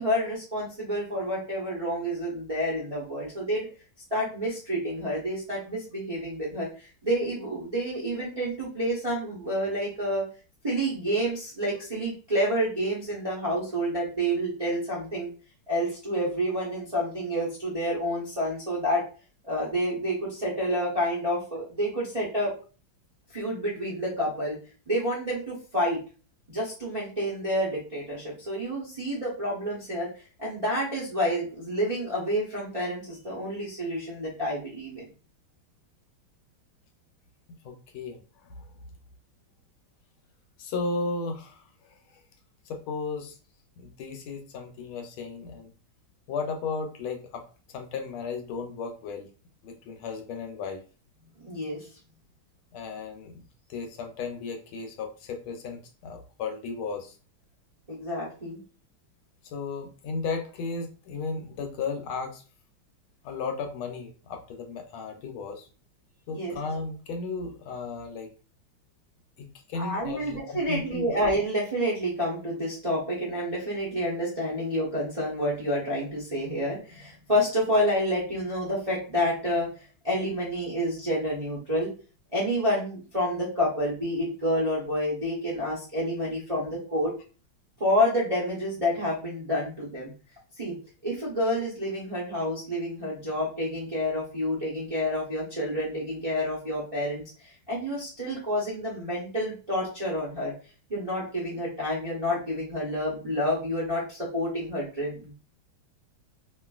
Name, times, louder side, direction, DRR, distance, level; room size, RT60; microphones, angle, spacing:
voice 1, 0.0-3.7 4.1-10.2 10.6-15.3 15.7-19.0 19.4-22.5 23.3-24.6 24.9-26.0 26.5-30.1 30.4-35.1 51.4-51.9 57.9-58.6 66.3-66.6 69.7-81.9 82.3-87.1 87.8-90.1 90.6-90.8 91.0-100.5 100.9-105.3, equal, 45° right, -7 dB, 0.4 m, -29 dB
voice 2, 37.6-38.6 40.6-42.2 42.7-43.4 43.8-45.7 46.3-47.4 47.7-49.3 49.6-50.8 52.7-53.4 53.7-57.2 59.4-62.4 63.2-65.7 66.3-68.3 69.4-71.1, left 4 dB, 85° left, 4 dB, 1.5 m, -35 dB
3.0 x 2.5 x 2.3 m, 0.36 s
omnidirectional pair, 2.2 m